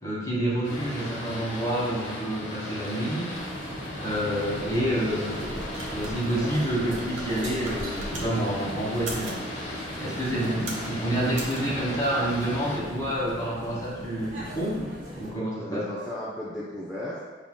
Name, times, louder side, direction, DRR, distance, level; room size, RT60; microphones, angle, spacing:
voice 1, 0.0-3.4 4.0-5.5 5.9-9.4 10.0-15.8, right 1 dB, 20° left, -8 dB, 1.5 m, -28 dB
Boat Water vehicle, 0.6-12.8, equal, 85° left, 1.1 m, -36 dB
sound 1, 3.3-15.3, left 1 dB, 45° right, 1.3 m, -39 dB
sound 2, 5.2-8.3 8.9-9.4 10.1-10.9 11.3-11.6, right 2 dB, 75° right, 0.9 m, -39 dB
voice 2, 15.6-17.2, left 1 dB, 5° right, -8 dB, 0.5 m, -35 dB
5.7 x 3.5 x 2.3 m, 1.4 s
head